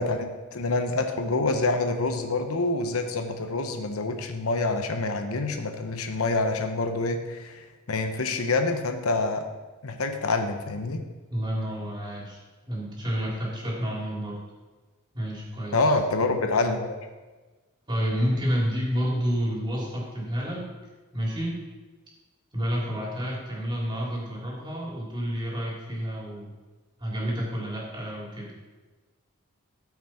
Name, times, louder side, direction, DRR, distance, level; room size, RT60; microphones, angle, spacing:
voice 1, 0.0-9.5 9.8-11.0 15.7-17.0, left 3 dB, 90° left, 6 dB, 0.9 m, -27 dB
voice 2, 11.3-12.4 12.7-14.4 15.1-15.8 17.9-20.7 21.1-21.6 22.5-26.5 27.0-28.5, equal, 20° right, -4 dB, 3.0 m, -29 dB
14.0 x 5.9 x 4.4 m, 1.3 s
head